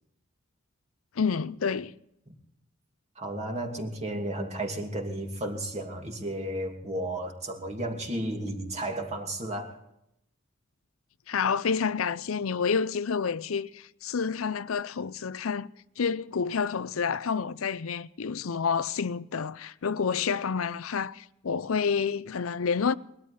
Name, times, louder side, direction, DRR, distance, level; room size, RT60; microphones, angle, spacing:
voice 1, 1.2-1.9 11.3-15.7 16.0-22.9, left 6 dB, 80° left, 0.6 m, -29 dB
voice 2, 3.2-9.8, right 1 dB, 35° right, 2.5 m, -33 dB
21.0 x 13.0 x 4.3 m
head